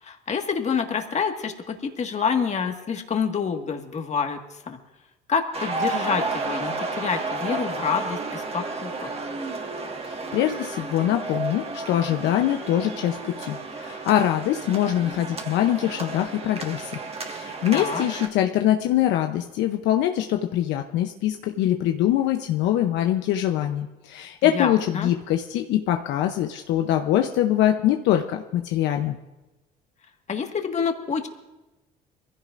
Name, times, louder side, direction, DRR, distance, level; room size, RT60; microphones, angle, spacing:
voice 1, 0.0-4.8 5.3-9.1 17.7-18.1 24.4-25.1 30.3-31.3, left 6 dB, 35° left, 4 dB, 1.8 m, -27 dB
sound 1, 5.5-18.3, right 3 dB, 30° right, 1.7 m, -32 dB
voice 2, 10.0-29.2, left 12 dB, 70° left, 5 dB, 0.8 m, -23 dB
23.0 x 15.5 x 2.6 m, 1.1 s
supercardioid pair, 80°, 19 cm